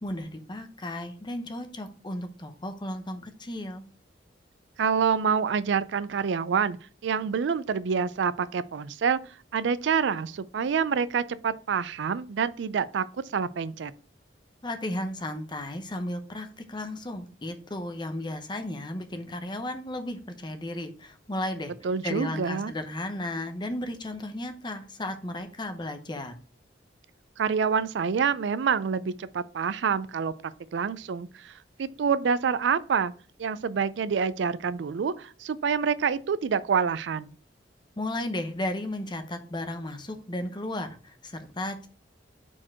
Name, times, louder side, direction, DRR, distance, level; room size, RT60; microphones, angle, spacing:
voice 1, 0.0-3.8 14.6-21.7 22.0-26.3 38.0-41.9, left 1 dB, 25° left, 0.8 m, -34 dB
voice 2, 4.8-6.8 7.0-9.2 9.5-13.0 13.3-13.9 21.8-22.7 27.4-30.3 30.7-31.5 31.8-33.1 33.4-37.3, right 6 dB, 75° right, 0.4 m, -27 dB
4.5 x 4.4 x 5.9 m
head